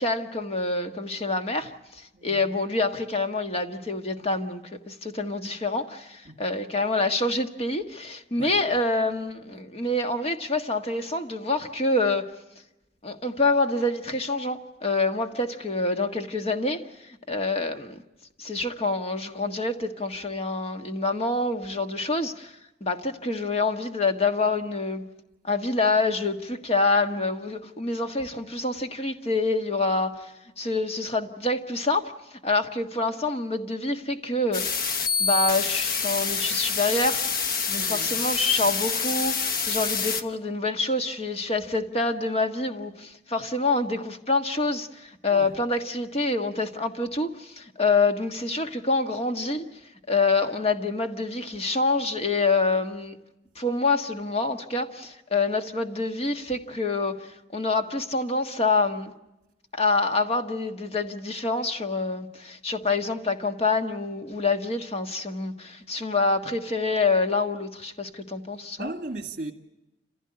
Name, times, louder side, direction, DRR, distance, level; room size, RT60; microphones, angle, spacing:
voice 1, 0.0-12.3 13.0-18.0 18.4-22.5 22.8-25.1 25.4-34.9 35.2-37.2 37.7-49.6 50.1-53.2 53.5-59.1 59.7-68.9, left 3 dB, 35° left, 1.5 m, -26 dB
sound 1, 34.5-40.2, left 6 dB, 55° left, 1.1 m, -27 dB
voice 2, 37.7-38.3 45.3-45.6 68.8-69.5, right 2 dB, 50° right, 2.2 m, -37 dB
29.0 x 15.5 x 9.7 m
head